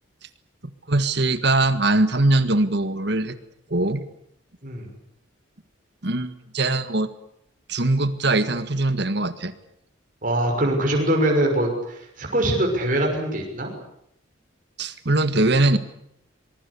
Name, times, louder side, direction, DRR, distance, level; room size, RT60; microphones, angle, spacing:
voice 1, 0.9-3.4 3.7-4.0 6.0-7.1 7.7-9.5 14.8-15.8, right 2 dB, 60° right, 12 dB, 1.7 m, -21 dB
voice 2, 10.2-13.7, right 1 dB, 45° right, 1 dB, 6.1 m, -23 dB
24.5 x 22.5 x 8.4 m, 0.75 s
head